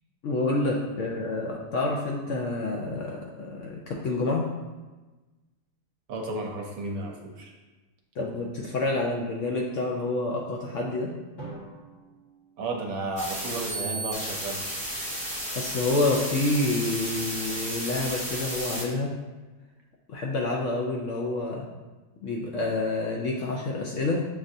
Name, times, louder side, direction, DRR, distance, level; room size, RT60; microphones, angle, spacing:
voice 1, 0.2-4.5 8.2-11.1 15.5-19.1 20.1-21.7 22.2-24.2, left 2 dB, 70° left, -2 dB, 0.7 m, -28 dB
voice 2, 6.1-7.5 12.6-14.6, right 2 dB, 70° right, 1 dB, 1.0 m, -33 dB
Drum, 11.4-13.5, right 2 dB, 30° left, 1.2 m, -46 dB
sound 1, 13.2-18.8, right 1 dB, 5° left, 0.7 m, -33 dB
7.2 x 2.4 x 2.6 m, 1.2 s
omnidirectional pair, 1.7 m